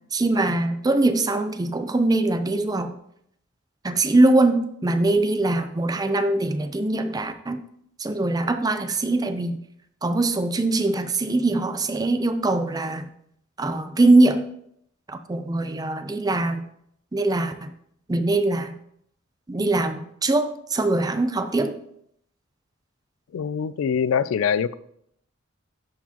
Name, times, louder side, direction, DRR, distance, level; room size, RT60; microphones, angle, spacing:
voice 1, 0.1-2.9 3.8-7.6 8.0-9.6 10.0-13.1 13.6-14.4 15.1-16.6 17.1-17.7 18.1-18.7 19.5-21.8, right 2 dB, 20° right, 0.4 m, -22 dB
voice 2, 23.3-24.7, left 7 dB, 75° left, 0.3 m, -23 dB
11.5 x 4.6 x 2.9 m
head